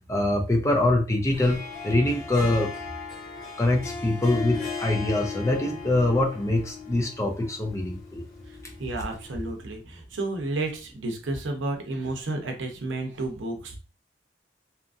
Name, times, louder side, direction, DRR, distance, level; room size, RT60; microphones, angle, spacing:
voice 1, 0.1-2.7 3.6-8.2, left 1 dB, 15° left, 2 dB, 0.4 m, -24 dB
Harp, 1.3-9.5, left 5 dB, 50° left, 0.9 m, -38 dB
voice 2, 8.5-13.8, right 2 dB, 85° right, 3 dB, 0.7 m, -31 dB
2.8 x 2.4 x 2.5 m, 0.34 s
head